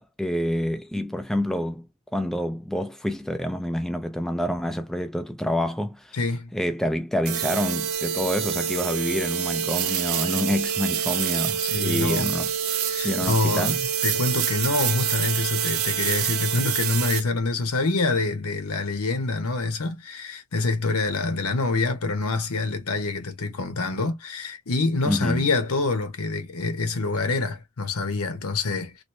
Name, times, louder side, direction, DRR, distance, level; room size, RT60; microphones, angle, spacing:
voice 1, 0.0-1.9 2.1-6.2 6.5-12.5 13.0-13.8 25.1-25.5, left 1 dB, ahead, 0.3 m, -27 dB
voice 2, 6.1-6.5 11.6-12.3 12.9-13.8 14.0-29.0, left 3 dB, 85° left, 1.0 m, -26 dB
sound 1, 7.2-17.2, right 8 dB, 80° right, 0.6 m, -26 dB
3.1 x 2.6 x 3.0 m
head